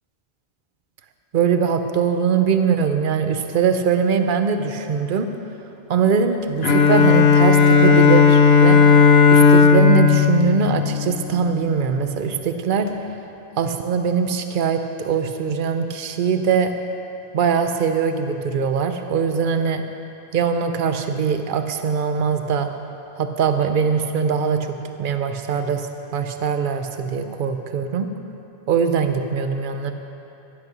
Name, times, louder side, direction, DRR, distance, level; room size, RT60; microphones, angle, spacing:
voice 1, 1.3-5.3 5.9-8.8 9.3-12.9 13.6-16.7 17.3-19.8 20.3-22.7 23.2-28.1 28.7-29.9, right 6 dB, 55° right, 7 dB, 0.8 m, -21 dB
Bowed string instrument, 6.6-11.5, left 5 dB, 70° left, 1.0 m, -14 dB
12.0 x 8.4 x 6.0 m, 2.8 s
omnidirectional pair, 1.1 m